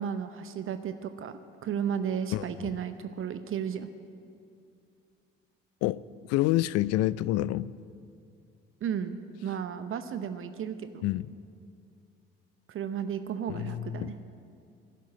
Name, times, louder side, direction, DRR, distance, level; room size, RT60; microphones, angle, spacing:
voice 1, 0.0-3.9 8.8-11.0 12.7-14.1, right 8 dB, 45° right, 10 dB, 0.7 m, -34 dB
voice 2, 6.3-7.7 11.0-11.3 13.5-14.1, left 15 dB, 55° left, 20 dB, 0.4 m, -27 dB
11.5 x 7.4 x 9.8 m, 2.4 s
hypercardioid pair, 55°, 29 cm